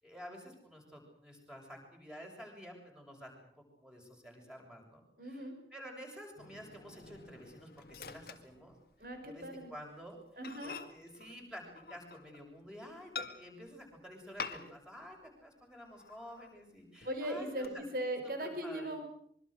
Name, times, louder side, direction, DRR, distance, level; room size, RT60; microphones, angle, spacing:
voice 1, 0.0-10.2 10.6-17.8 18.2-19.0, equal, 5° right, 1 dB, 7.3 m, -51 dB
voice 2, 5.2-5.5 9.0-9.7 10.4-10.8 17.0-19.1, right 1 dB, 55° right, 6 dB, 5.0 m, -39 dB
Microwave oven, 6.4-9.2 9.6-9.8 10.1-10.2 10.4-12.5 13.1-13.8 14.4-15.0 15.2-15.3 15.8-16.6 17.0-17.7, left 4 dB, 60° left, 2.0 m, -47 dB
25.0 x 24.0 x 6.6 m, 0.65 s
head